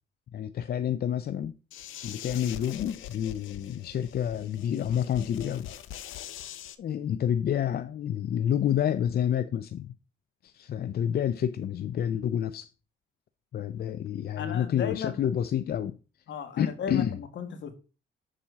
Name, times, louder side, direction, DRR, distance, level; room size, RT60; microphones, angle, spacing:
voice 1, 0.3-1.5 2.0-5.7 6.0-6.3 6.8-9.9 10.4-12.7 13.5-16.0 16.6-17.2, left 9 dB, 50° left, 0.5 m, -29 dB
sound 1, 1.7-6.8, left 11 dB, 85° left, 0.8 m, -43 dB
voice 2, 14.4-15.2 16.3-17.8, left 6 dB, 65° left, 1.7 m, -35 dB
7.3 x 4.3 x 6.2 m
cardioid pair, 90°, 20 cm